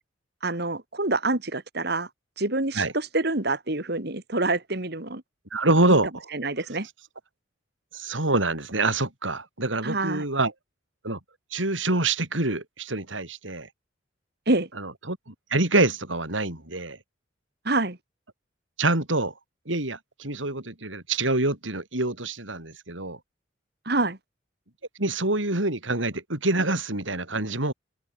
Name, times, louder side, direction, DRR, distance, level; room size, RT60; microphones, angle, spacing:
voice 1, 0.4-2.1 2.4-5.2 5.9-6.0 6.3-6.9 9.8-10.2 14.5-14.7 17.6-18.0 23.9-24.2, right 2 dB, 55° right, 2.7 m, -26 dB
voice 2, 5.5-6.2 7.9-10.5 11.0-11.2 11.5-13.7 14.8-17.0 18.8-19.3 19.6-23.2 25.0-27.7, right 2 dB, 85° right, 5.1 m, -26 dB
open air
head